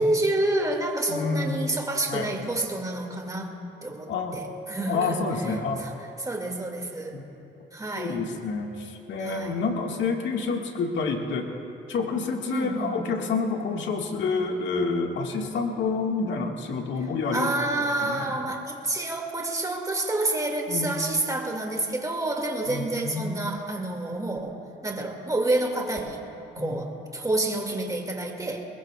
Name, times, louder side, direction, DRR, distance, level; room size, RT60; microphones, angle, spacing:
voice 1, 0.0-3.5 3.8-5.2 5.8-5.9 6.2-7.2 7.7-8.2 9.2-9.6 12.5-13.0 17.3-24.5 24.8-26.2 26.6-28.6, right 2 dB, 15° right, 1 dB, 2.2 m, -28 dB
voice 2, 1.1-1.6 2.1-2.3 4.1-4.4 4.9-5.8 7.1-7.3 8.0-11.5 11.9-17.5 18.0-18.3 20.7-21.0 22.7-23.4 26.6-26.8, left 4 dB, 70° left, 2 dB, 1.8 m, -28 dB
21.5 x 21.5 x 2.4 m, 2.9 s
cardioid pair, 90°, 20 cm